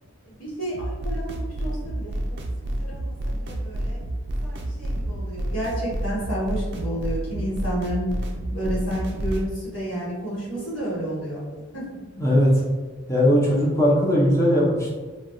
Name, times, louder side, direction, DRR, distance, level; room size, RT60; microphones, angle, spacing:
voice 1, 0.2-4.0 4.4-8.1 8.5-11.4 11.7-11.9, right 1 dB, 75° left, -8 dB, 1.3 m, -31 dB
sound 1, 0.7-9.5, right 1 dB, 55° right, 0.4 m, -29 dB
voice 2, 12.2-12.5 13.1-14.9, equal, 15° left, -5 dB, 0.6 m, -19 dB
3.2 x 2.3 x 2.6 m, 1.3 s
head